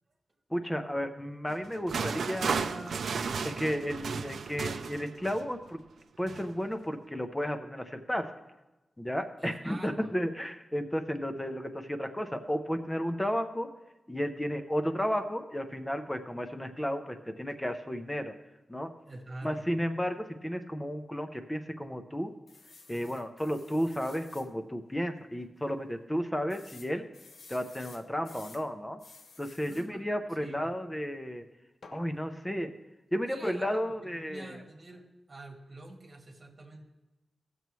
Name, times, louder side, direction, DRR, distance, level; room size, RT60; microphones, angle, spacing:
voice 1, 0.5-3.0 3.4-5.8 6.2-8.3 9.0-13.7 14.1-18.3 18.7-18.9 19.4-22.3 22.9-27.1 27.5-29.0 29.4-31.4 31.9-32.7 33.1-34.6, equal, 10° left, 7 dB, 0.5 m, -33 dB
sound 1, 1.5-5.6 6.3-6.5, right 5 dB, 85° right, 0.4 m, -34 dB
voice 2, 9.4-10.1 19.1-19.6 29.6-30.0 30.4-30.7 33.2-36.8, right 2 dB, 35° right, 0 dB, 1.7 m, -47 dB
sound 2, 22.5-24.5 25.0-25.1 25.4-25.5 26.5-28.7 29.0-29.9 31.8-32.1, left 4 dB, 65° left, 0.7 m, -53 dB
15.5 x 6.8 x 3.1 m, 1.0 s
wide cardioid pair, 140°, 0 cm